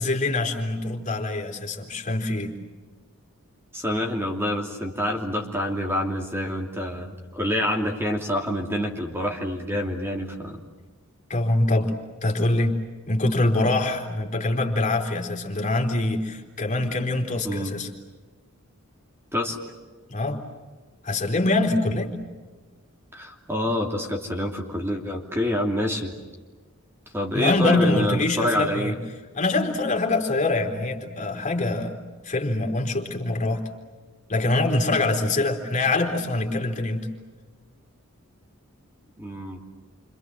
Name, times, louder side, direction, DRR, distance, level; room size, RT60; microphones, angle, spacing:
voice 1, 0.0-2.5 11.3-11.9 12.2-12.8 13.1-17.9 20.1-20.4 21.0-22.2 27.3-29.0 29.3-32.0 32.2-33.6 34.3-37.1, left 2 dB, 35° left, 3 dB, 3.8 m, -24 dB
voice 2, 3.7-10.6 17.4-17.7 19.3-19.6 23.1-26.1 27.1-28.9 39.2-39.6, left 1 dB, 10° right, 1 dB, 2.9 m, -27 dB
29.5 x 26.5 x 7.7 m, 1.3 s
head